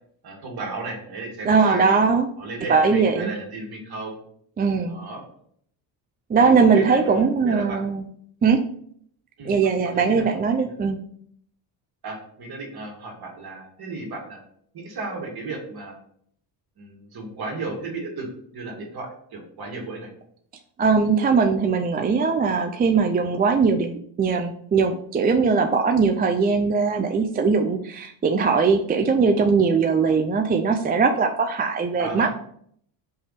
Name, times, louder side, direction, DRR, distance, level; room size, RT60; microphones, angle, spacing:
voice 1, 0.2-2.0 2.4-4.2 4.9-5.2 6.3-7.8 9.4-10.7 12.0-14.4 14.7-16.0 16.8-20.1 32.0-32.3, right 3 dB, 50° right, -1 dB, 2.4 m, -34 dB
voice 2, 1.5-2.3 2.7-3.3 4.6-5.1 6.3-8.0 8.4-8.6 9.5-11.0 20.8-32.3, right 5 dB, 20° right, 4 dB, 0.4 m, -20 dB
5.5 x 3.4 x 5.7 m, 0.65 s
cardioid pair, 115°, 48 cm